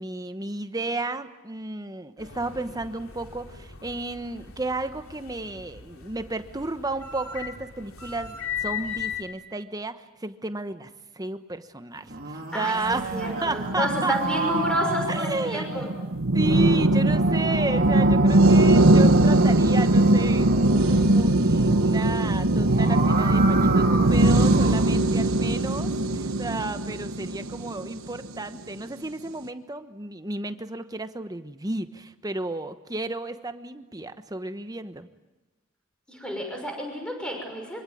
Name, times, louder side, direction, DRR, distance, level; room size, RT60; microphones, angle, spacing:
voice 1, 0.0-10.9 11.2-14.1 15.1-15.9 16.3-35.1, right 2 dB, 15° right, 10 dB, 1.1 m, -33 dB
sound 1, 2.2-9.2, left 8 dB, 85° left, 2.6 m, -38 dB
sound 2, 12.0-15.9 16.8-21.1 22.5-25.0, right 4 dB, 40° right, 3.7 m, -32 dB
voice 2, 12.5-15.9 36.1-37.8, equal, 5° left, 2 dB, 6.1 m, -30 dB
sound 3, 12.9-28.4, right 1 dB, 70° right, 1.4 m, -21 dB
25.0 x 24.5 x 9.3 m, 1.1 s
head